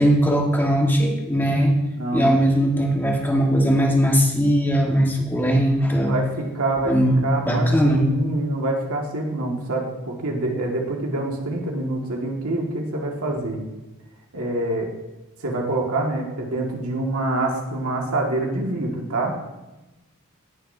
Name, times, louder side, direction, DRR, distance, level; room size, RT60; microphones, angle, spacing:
voice 1, 0.0-1.7 2.1-6.1 6.8-8.1, equal, 10° left, 0 dB, 1.5 m, -19 dB
voice 2, 2.0-2.4 6.1-6.9 7.2-13.6 14.3-14.9 15.4-19.5, right 2 dB, 90° right, 0 dB, 2.0 m, -26 dB
18.5 x 6.6 x 2.7 m, 1.0 s
head